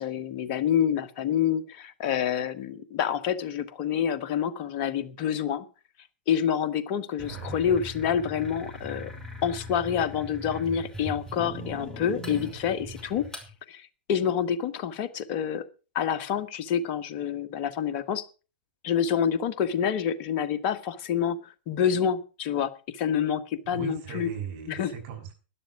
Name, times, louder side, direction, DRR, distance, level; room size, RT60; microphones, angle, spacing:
voice 1, 0.0-5.6 6.3-9.1 9.4-13.2 13.7-15.6 15.9-18.2 18.8-24.3 24.7-24.9, left 8 dB, 45° left, 9 dB, 1.5 m, -27 dB
sound 1, 7.2-13.5, equal, 10° left, 5.7 m, -40 dB
voice 2, 23.7-25.3, right 7 dB, 45° right, 4 dB, 6.5 m, -38 dB
12.5 x 11.0 x 6.0 m, 0.35 s
hypercardioid pair, 105°, 6 cm